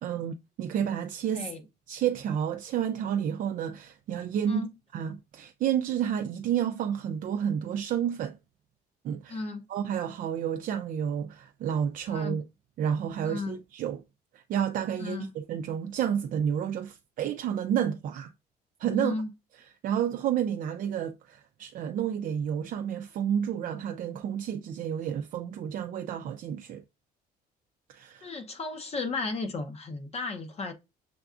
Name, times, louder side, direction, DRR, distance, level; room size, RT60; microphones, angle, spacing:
voice 1, 0.0-1.5 1.9-4.7 4.9-8.4 9.0-9.4 9.7-12.4 12.8-14.0 14.3-18.3 18.8-19.1 19.8-26.8 27.9-28.3, right 9 dB, 55° right, 0.4 m, -30 dB
voice 2, 9.3-9.7 12.1-12.4 13.2-13.6 15.0-15.3 18.9-19.3 28.2-30.7, left 3 dB, 40° left, 0.8 m, -34 dB
6.8 x 2.3 x 2.4 m
cardioid pair, 110°, 17 cm